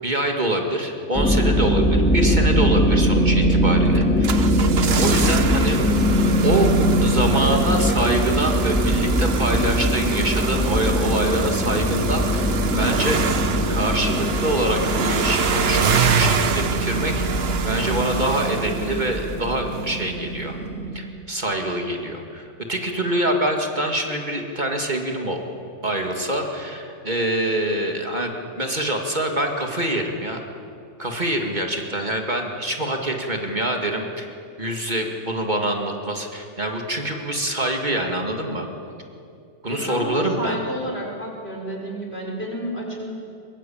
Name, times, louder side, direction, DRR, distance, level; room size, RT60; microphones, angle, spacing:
voice 1, 0.0-4.5 5.0-5.8 6.1-6.2 6.4-6.7 7.0-13.2 13.7-15.9 16.1-20.6 20.9-25.4 25.8-30.4 31.0-38.7 39.6-40.6, right 1 dB, 40° right, 2 dB, 2.3 m, -25 dB
sound 1, 1.1-21.0, equal, 5° left, 2.9 m, -21 dB
sound 2, 4.0-19.5 19.7-19.8, right 6 dB, 60° right, 1.2 m, -27 dB
voice 2, 39.7-43.1, equal, 55° left, -1 dB, 5.6 m, -30 dB
23.0 x 22.0 x 8.7 m, 2.5 s
omnidirectional pair, 1.2 m